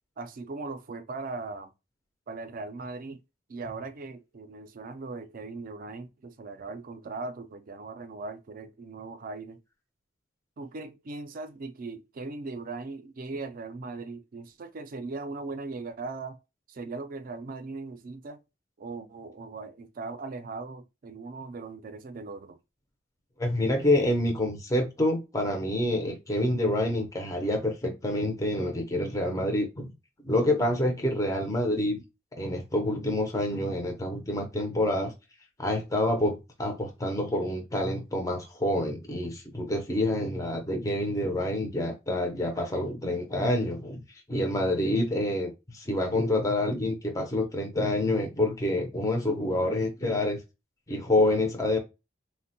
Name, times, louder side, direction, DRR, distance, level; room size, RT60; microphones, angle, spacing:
voice 1, 0.2-1.7 2.3-3.2 3.5-9.6 10.6-16.4 16.7-18.4 18.8-22.6, right 3 dB, 45° right, 0.4 m, -39 dB
voice 2, 23.4-29.9 30.2-32.0 32.3-35.1 35.6-44.0 44.3-50.4 50.9-51.8, left 1 dB, 15° left, 0.5 m, -27 dB
3.4 x 2.1 x 2.6 m
head